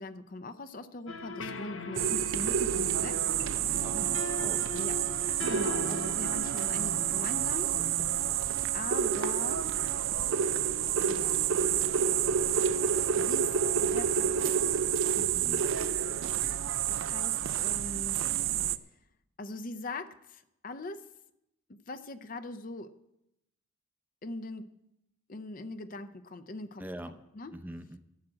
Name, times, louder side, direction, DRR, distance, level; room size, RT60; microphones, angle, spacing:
voice 1, 0.0-3.3 4.8-5.0 5.4-7.8 8.7-9.8 11.0-11.5 13.2-14.8 16.9-18.2 19.4-21.1 21.7-23.0 24.2-24.8 25.3-26.8 27.3-27.5, left 2 dB, 40° left, 10 dB, 0.6 m, -41 dB
sound 1, 1.1-8.3, left 2 dB, 70° left, 0.9 m, -40 dB
sound 2, 1.9-18.8, right 9 dB, 70° right, 0.5 m, -29 dB
voice 2, 3.8-4.6 15.2-15.6 26.8-27.2 27.5-28.0, right 1 dB, 10° right, 9 dB, 0.6 m, -43 dB
12.0 x 7.5 x 8.7 m, 0.86 s
head